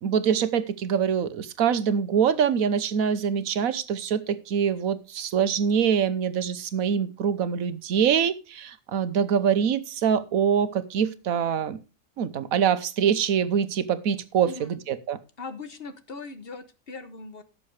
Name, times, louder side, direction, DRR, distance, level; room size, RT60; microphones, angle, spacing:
voice 1, 0.0-11.8 12.2-15.2, right 7 dB, 85° right, 1.3 m, -24 dB
voice 2, 14.4-14.8 15.4-17.4, left 3 dB, 45° left, 1.2 m, -40 dB
17.0 x 6.9 x 3.3 m
omnidirectional pair, 1.4 m